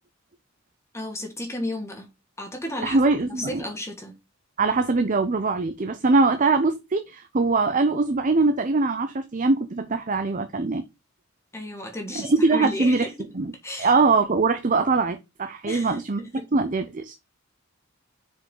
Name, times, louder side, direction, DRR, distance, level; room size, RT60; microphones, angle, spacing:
voice 1, 0.9-2.1 2.4-4.2 11.5-13.3 13.6-13.9 15.7-16.0 16.4-16.5, left 1 dB, 15° left, 1.9 m, -33 dB
voice 2, 2.8-3.6 4.6-10.8 12.1-13.1 13.4-13.5 13.8-17.1, right 3 dB, 40° right, 0.6 m, -22 dB
6.4 x 5.3 x 3.8 m
head